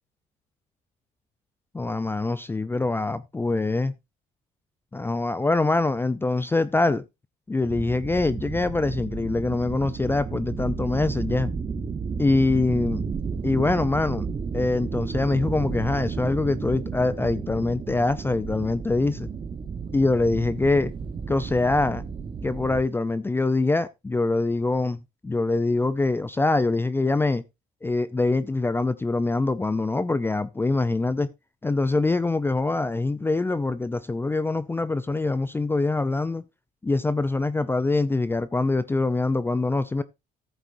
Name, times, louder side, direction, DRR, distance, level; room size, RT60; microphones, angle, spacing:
voice 1, 1.7-3.9 4.9-7.0 7.5-11.5 12.2-13.0 13.4-14.3 14.5-19.3 19.9-20.9 21.3-22.0 22.4-27.4 27.8-31.3 31.6-36.4 36.8-40.0, left 3 dB, 15° left, 0.5 m, -24 dB
sound 1, 7.7-22.8, right 5 dB, 30° right, 1.1 m, -32 dB
14.5 x 8.0 x 2.6 m
cardioid pair, 110°, 17 cm